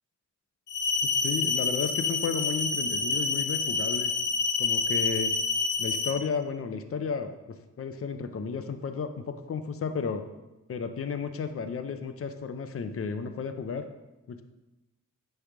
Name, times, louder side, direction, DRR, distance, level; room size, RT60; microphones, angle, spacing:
sound 1, 0.7-6.1, left 4 dB, 65° left, 1.0 m, -28 dB
voice 1, 1.1-4.1 4.6-5.3 5.8-7.3 7.8-10.3 10.7-13.9 14.3-14.4, left 5 dB, 45° left, 8 dB, 0.6 m, -33 dB
10.0 x 3.4 x 5.9 m, 1.0 s
wide cardioid pair, 135°, 32 cm